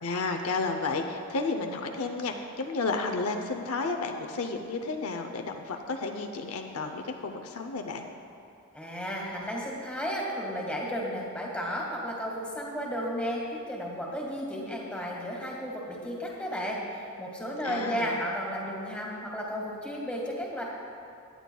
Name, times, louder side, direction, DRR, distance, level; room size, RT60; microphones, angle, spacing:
voice 1, 0.0-8.1 17.6-18.2, left 3 dB, 75° left, 4 dB, 0.6 m, -32 dB
voice 2, 8.7-20.6, equal, 5° left, -3 dB, 1.6 m, -33 dB
17.5 x 10.0 x 2.3 m, 2.6 s
head